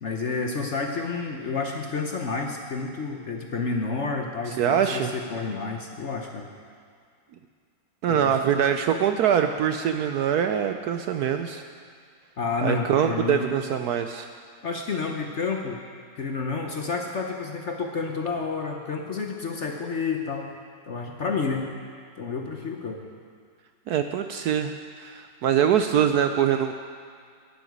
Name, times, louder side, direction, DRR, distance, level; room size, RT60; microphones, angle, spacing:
voice 1, 0.0-6.5 8.1-8.6 12.4-13.5 14.6-15.8 16.2-20.5 20.9-21.7 22.2-23.1, left 4 dB, 50° left, 2 dB, 0.9 m, -30 dB
voice 2, 4.6-5.1 8.0-11.6 12.6-14.3 23.9-26.7, right 9 dB, 70° right, 7 dB, 0.9 m, -23 dB
12.0 x 7.1 x 9.3 m, 2.1 s
omnidirectional pair, 2.0 m